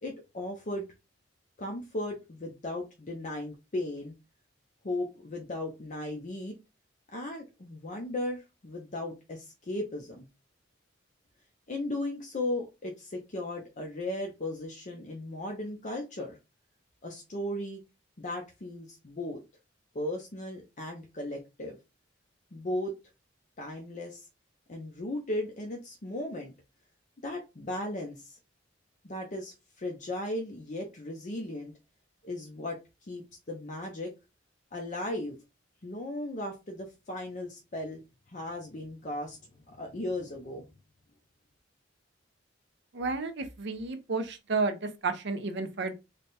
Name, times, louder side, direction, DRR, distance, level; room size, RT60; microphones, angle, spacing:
voice 1, 0.0-0.9 1.6-4.1 4.8-6.6 7.1-10.3 11.7-16.4 17.0-17.8 18.2-19.4 19.9-21.8 22.5-22.9 23.6-24.3 24.7-26.5 27.2-28.4 29.0-31.7 32.2-34.1 34.7-35.4 35.8-38.0 38.3-40.7, left 1 dB, 40° left, 0.6 m, -36 dB
voice 2, 42.9-45.9, right 3 dB, 65° right, 0.6 m, -31 dB
3.3 x 2.2 x 4.1 m
head